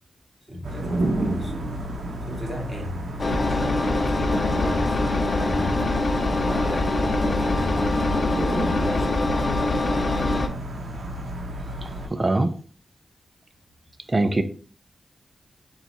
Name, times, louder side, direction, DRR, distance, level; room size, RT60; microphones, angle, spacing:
voice 1, 0.5-1.7 2.2-3.0 3.5-5.0 5.4-5.8 6.5-9.2, left 1 dB, 5° right, -2 dB, 1.5 m, -36 dB
sound 1, 0.6-12.1, right 1 dB, 85° right, 0.8 m, -31 dB
Engine, 3.2-10.5, left 2 dB, 50° left, 0.5 m, -23 dB
voice 2, 11.8-12.5 14.1-14.4, right 2 dB, 35° right, 9 dB, 0.5 m, -23 dB
4.1 x 2.4 x 4.0 m, 0.42 s
cardioid pair, 55°, 0 cm